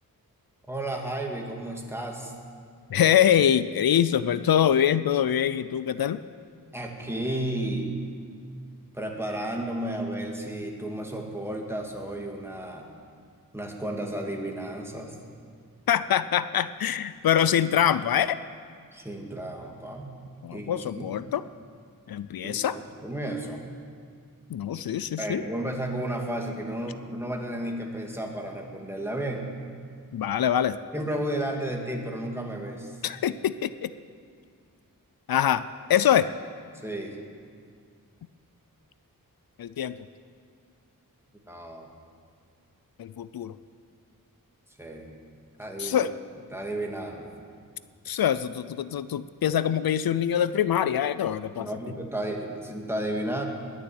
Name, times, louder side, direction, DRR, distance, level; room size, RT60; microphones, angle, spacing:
voice 1, 0.7-2.3 6.7-8.0 8.9-12.8 13.5-15.2 18.9-20.2 20.5-21.0 22.4-22.6 23.0-23.6 25.2-29.5 30.9-33.0 36.8-37.2 41.5-41.9 44.8-45.1 45.6-46.1 46.5-47.3 51.6-53.5, right 1 dB, 5° right, 1 dB, 2.1 m, -33 dB
voice 2, 2.9-6.2 15.9-18.4 20.4-21.4 22.1-22.8 24.5-25.4 30.1-30.8 33.0-33.9 35.3-36.3 39.6-39.9 43.0-43.5 45.8-46.1 48.1-51.7, left 9 dB, 85° left, 14 dB, 0.5 m, -24 dB
20.5 x 7.4 x 9.4 m, 2.1 s
wide cardioid pair, 110°, 35 cm